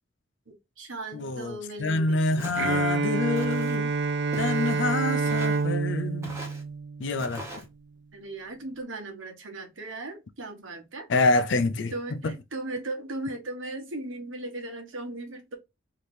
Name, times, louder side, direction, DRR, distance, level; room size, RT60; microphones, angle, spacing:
voice 1, 0.5-2.4 8.1-11.1 11.9-15.6, right 2 dB, 80° right, 1.2 m, -37 dB
voice 2, 1.1-3.9 4.4-6.4 7.0-7.5 11.1-12.4, left 2 dB, 65° left, 0.5 m, -27 dB
Walk footsteps, 2.4-2.8 3.4-3.8 4.3-4.8 5.3-5.7 6.2-6.6 7.2-7.7, right 1 dB, 15° right, 1.1 m, -42 dB
Bowed string instrument, 2.6-7.4, right 4 dB, 60° right, 0.5 m, -28 dB
3.3 x 2.9 x 4.2 m
head